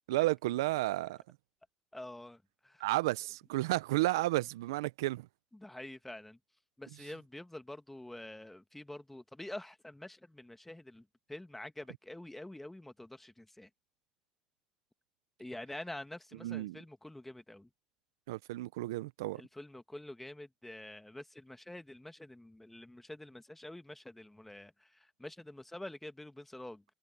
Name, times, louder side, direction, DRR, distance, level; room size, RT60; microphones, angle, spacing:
voice 1, 0.1-1.2 2.8-5.3 16.4-16.8 18.3-19.4, right 18 dB, 85° right, 0.7 m, -32 dB
voice 2, 1.9-2.8 4.2-4.3 5.5-6.4 6.8-13.7 15.4-17.7 19.4-26.8, left 1 dB, 10° left, 2.1 m, -47 dB
hypercardioid pair, 65°, 2 cm